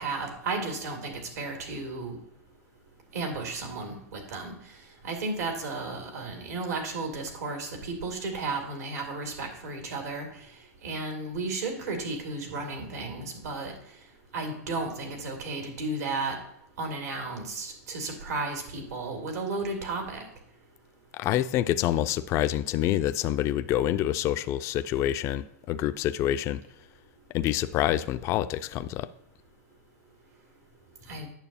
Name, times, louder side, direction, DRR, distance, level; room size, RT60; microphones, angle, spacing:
voice 1, 0.0-2.1 3.1-4.5 5.0-10.3 10.8-13.7 14.3-16.4 16.8-20.3 31.1-31.3, right 3 dB, 85° right, 2 dB, 2.3 m, -33 dB
voice 2, 21.1-26.6 27.3-29.1, left 12 dB, 35° left, 12 dB, 0.3 m, -27 dB
9.0 x 6.7 x 2.7 m, 0.77 s
hypercardioid pair, 125°, 8 cm